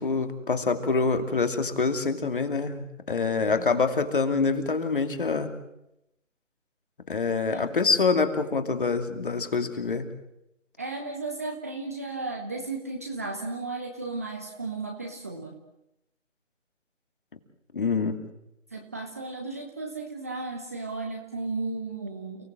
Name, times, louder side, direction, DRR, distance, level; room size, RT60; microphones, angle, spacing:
voice 1, 0.0-5.5 7.1-10.1 17.7-18.2, left 4 dB, 40° left, 8 dB, 2.8 m, -26 dB
voice 2, 3.2-3.7 7.5-7.6 10.8-15.6 18.7-22.4, right 3 dB, 10° right, 1 dB, 1.0 m, -35 dB
30.0 x 18.5 x 7.6 m, 0.86 s
figure-of-eight pair, 155°, 39 cm